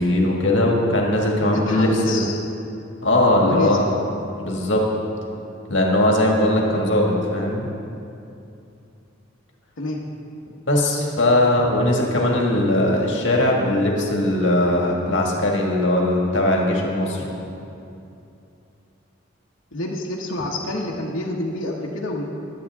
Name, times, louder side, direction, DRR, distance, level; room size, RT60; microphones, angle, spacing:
voice 1, 0.0-2.3 3.0-3.8 4.4-4.9 5.7-7.7 10.7-17.3, left 1 dB, 65° left, -1 dB, 1.9 m, -19 dB
voice 2, 1.5-2.3 3.4-3.9 9.8-10.0 19.7-22.2, left 2 dB, 80° left, -5 dB, 1.1 m, -27 dB
20.5 x 8.6 x 3.6 m, 2.7 s
head